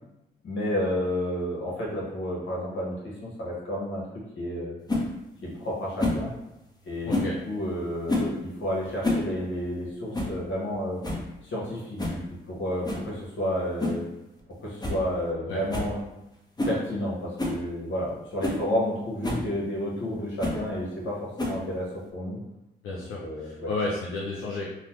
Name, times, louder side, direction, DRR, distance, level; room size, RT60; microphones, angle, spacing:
voice 1, 0.4-4.1 4.4-4.8 5.4-6.3 6.8-11.0 11.4-12.2 12.5-14.0 14.6-16.0 16.6-22.4 23.2-23.7, equal, 70° left, -4 dB, 1.2 m, -31 dB
sound 1, 4.9-5.1 6.0-6.3 7.1-7.4 8.1-8.4 8.9-9.3 9.6-9.7 10.1-10.4 10.7-10.8 11.0-11.3 12.0-12.2 12.8-13.1 13.8-14.1 14.4-14.5 14.8-15.0 15.3-15.4 15.7-15.9 16.6-16.8 17.4-17.6 18.1-18.2 18.4-18.6 19.2-19.5 20.4-20.6 21.4-21.7, left 2 dB, 20° left, 0.8 m, -28 dB
voice 2, 7.0-7.4 15.5-15.6 22.8-24.7, left 2 dB, 85° left, -4 dB, 0.5 m, -32 dB
3.0 x 2.1 x 3.0 m, 0.90 s
supercardioid pair, 55°, 21 cm